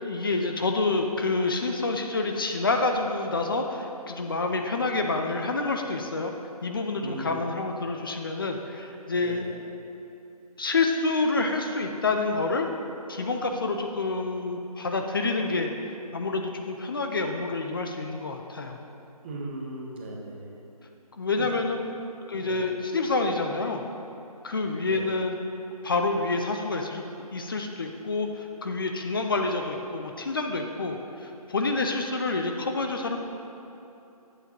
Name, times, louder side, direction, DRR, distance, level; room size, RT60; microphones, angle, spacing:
voice 1, 0.0-6.3 6.6-9.5 10.6-12.7 13.1-15.7 16.1-18.8 21.2-21.9 22.3-23.8 24.4-25.4 25.8-27.0 27.3-33.2, left 3 dB, 35° left, 4 dB, 0.4 m, -28 dB
voice 2, 7.0-7.4 9.2-9.6 19.2-20.6 21.4-21.5 22.3-22.7 24.9-25.1, right 2 dB, 15° right, -2 dB, 0.6 m, -38 dB
8.3 x 6.8 x 2.8 m, 3.0 s
figure-of-eight pair, 155°, 20 cm